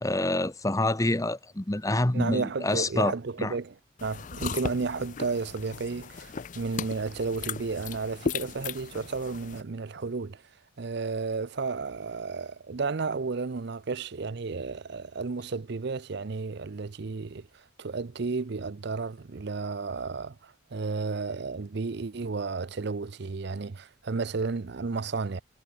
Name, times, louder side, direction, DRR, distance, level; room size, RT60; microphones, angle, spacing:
voice 1, 0.0-3.1 3.4-3.5, left 2 dB, 15° left, 0.8 m, -27 dB
voice 2, 2.1-10.4 10.8-25.4, right 4 dB, 50° right, 0.5 m, -32 dB
sound 1, 4.0-9.6, left 5 dB, 35° left, 0.4 m, -37 dB
head